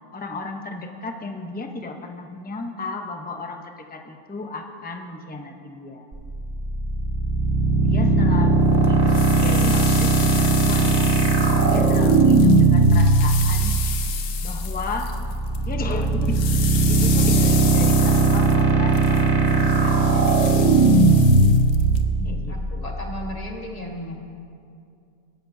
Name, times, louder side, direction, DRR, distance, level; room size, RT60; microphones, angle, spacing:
voice 1, 0.1-6.1 7.8-11.1 11.7-13.8 14.4-15.1 15.6-16.5 16.9-20.3 22.2-22.9, left 3 dB, 10° left, 3 dB, 0.5 m, -34 dB
sound 1, 6.1-23.3, right 3 dB, 35° right, 1.1 m, -19 dB
sound 2, 8.8-15.6 15.9-22.0, left 8 dB, 80° left, 1.3 m, -32 dB
voice 2, 22.0-24.2, equal, 30° left, 0 dB, 1.4 m, -35 dB
19.5 x 12.5 x 2.7 m, 2.5 s
omnidirectional pair, 1.5 m